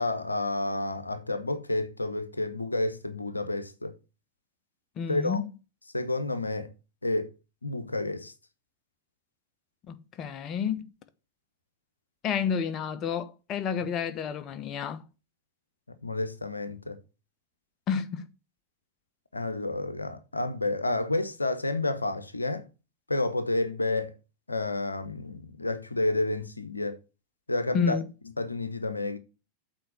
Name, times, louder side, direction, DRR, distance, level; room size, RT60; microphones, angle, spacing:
voice 1, 0.0-4.0 5.1-5.4 5.9-6.7 7.0-7.3 7.6-8.3 16.0-17.0 19.3-22.7 23.1-24.2 24.5-27.0 27.5-28.0 28.4-29.2, left 2 dB, 80° left, 0.8 m, -30 dB
voice 2, 5.0-5.4 9.9-10.9 12.2-15.0 17.9-18.3 27.7-28.1, left 7 dB, 30° left, 1.0 m, -30 dB
7.7 x 4.6 x 7.0 m
figure-of-eight pair, 90°, 0 cm